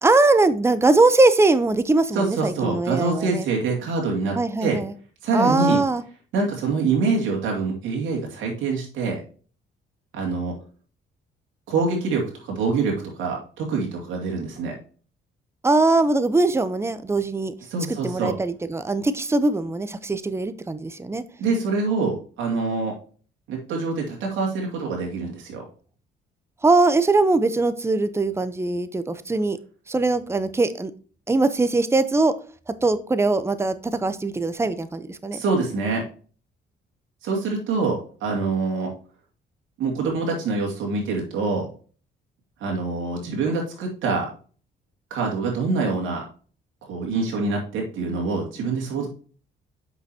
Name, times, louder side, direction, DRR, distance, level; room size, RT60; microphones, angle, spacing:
voice 1, 0.0-3.5 4.4-4.9 5.3-6.0 15.6-17.5 18.0-21.2 26.6-29.6 29.9-30.9 31.3-32.3 32.7-35.4, right 3 dB, 15° right, 12 dB, 0.7 m, -21 dB
voice 2, 2.1-4.8 5.2-5.8 6.3-9.2 10.1-10.6 11.7-14.8 17.7-18.3 21.4-22.9 23.5-25.6 35.3-36.1 37.2-38.9 39.8-41.7 42.6-44.3 45.1-46.2 46.9-49.1, right 4 dB, 85° right, -1 dB, 2.3 m, -25 dB
8.1 x 5.9 x 2.8 m, 0.39 s
cardioid pair, 90°, 20 cm